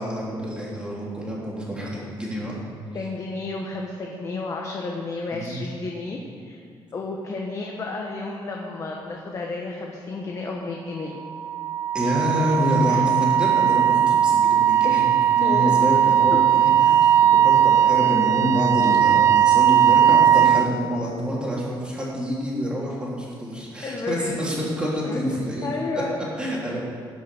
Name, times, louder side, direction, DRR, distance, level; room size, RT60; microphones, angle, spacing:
voice 1, 0.0-2.5 5.3-5.6 11.9-25.7 25.9-26.0 26.4-26.8, equal, 10° right, -5 dB, 3.1 m, -27 dB
voice 2, 2.9-6.6 6.9-11.1 12.9-13.0 14.8-15.0 15.4-15.7 23.8-24.4 25.0-25.2 25.6-26.2, left 3 dB, 35° left, 0 dB, 1.2 m, -32 dB
Wind instrument woodwind instrument, 11.2-20.7, right 10 dB, 35° right, 0.4 m, -18 dB
17.0 x 6.2 x 6.8 m, 2.3 s
cardioid pair, 155°, 9 cm